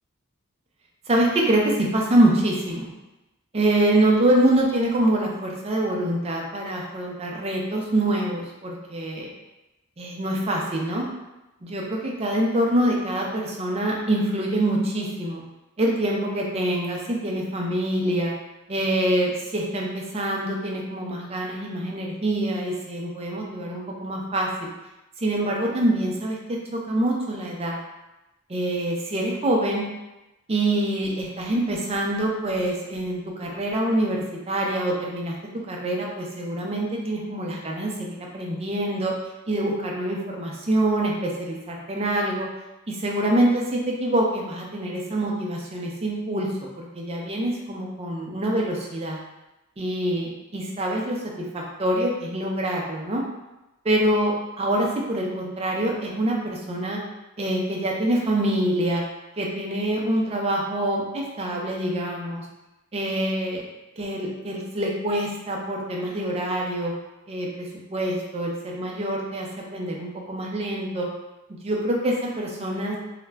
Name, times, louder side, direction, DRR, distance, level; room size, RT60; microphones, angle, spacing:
voice 1, 1.1-2.9 3.5-9.3 10.0-11.0 11.6-15.4 15.8-18.3 18.7-24.7 25.2-27.8 28.5-29.8 30.5-35.4 35.7-39.1 39.5-42.5 42.9-46.5 46.8-49.2 49.8-51.2 51.5-53.2 53.8-57.0 57.4-59.0 59.4-62.4 62.9-63.6 64.0-66.9 67.3-67.7 67.9-71.1 71.6-73.0, right 1 dB, 30° right, -1 dB, 0.4 m, -25 dB
2.3 x 2.1 x 3.3 m, 0.99 s
head